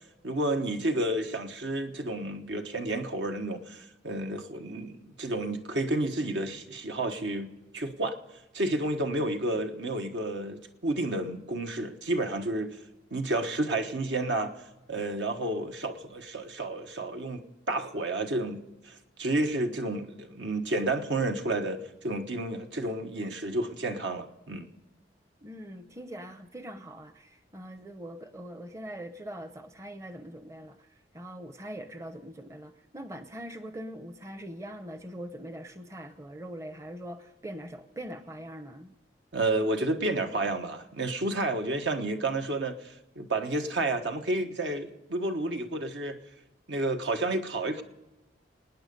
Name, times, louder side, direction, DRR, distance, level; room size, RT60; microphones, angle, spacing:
voice 1, 0.2-8.2 8.5-12.8 13.1-14.6 14.9-24.7 39.3-46.2 46.7-47.8, right 2 dB, 70° right, 1.3 m, -31 dB
voice 2, 25.4-38.9, right 1 dB, 15° right, 0.8 m, -42 dB
26.5 x 9.6 x 5.3 m
head